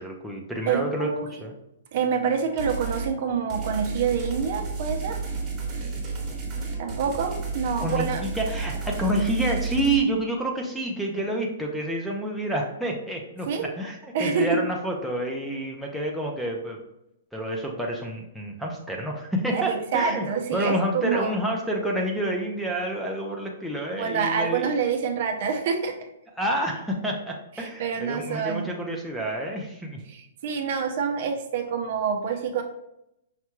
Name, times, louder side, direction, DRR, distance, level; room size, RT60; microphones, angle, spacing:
voice 1, 0.0-1.1 1.4-1.5 6.6-7.3 7.8-16.8 17.3-20.3 20.5-24.7 26.4-30.0, right 1 dB, ahead, -1 dB, 0.4 m, -29 dB
voice 2, 0.7-1.3 1.9-5.2 6.8-8.2 13.5-13.7 14.1-14.5 19.5-21.3 23.9-25.9 27.6-28.7 30.1-32.6, right 6 dB, 45° right, 4 dB, 0.6 m, -27 dB
sound 1, 2.6-3.1 3.5-10.0, right 4 dB, 15° right, 1.2 m, -31 dB
5.7 x 2.2 x 3.0 m, 0.84 s
hypercardioid pair, 160°, 0 cm